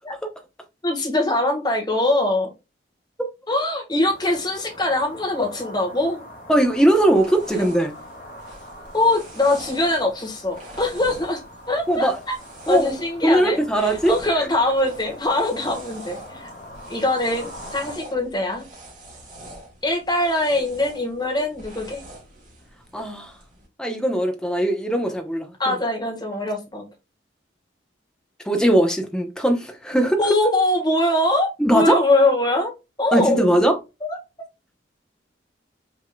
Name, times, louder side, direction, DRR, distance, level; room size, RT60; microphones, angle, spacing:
voice 1, 0.8-2.5 3.5-6.2 7.5-7.7 8.9-11.4 11.7-12.3 12.7-16.5 16.9-18.6 19.8-22.0 25.6-26.8 30.2-32.7 33.0-33.5 34.1-34.2, left 1 dB, 20° left, 1.3 m, -22 dB
sound 1, 4.0-18.0, left 1 dB, 45° left, 2.1 m, -42 dB
voice 2, 6.5-7.9 11.9-12.2 12.7-12.9 13.2-14.5 22.9-23.3 23.8-25.7 28.5-30.2 31.6-32.0 33.1-33.8, right 1 dB, 5° left, 0.7 m, -20 dB
sound 2, 6.6-23.7, right 1 dB, 45° right, 2.0 m, -44 dB
6.0 x 3.7 x 2.2 m
head